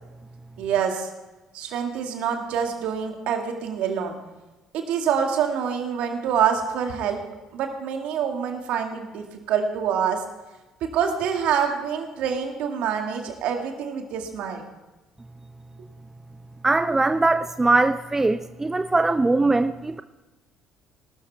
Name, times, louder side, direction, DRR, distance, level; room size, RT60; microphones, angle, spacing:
voice 1, 0.6-1.1 1.5-4.1 4.7-7.2 7.5-10.2 10.8-14.6, right 7 dB, 60° right, 4 dB, 2.1 m, -26 dB
voice 2, 16.6-20.0, right 2 dB, 15° right, 11 dB, 0.5 m, -21 dB
20.0 x 12.5 x 3.5 m, 1.1 s
hypercardioid pair, 55°, 2 cm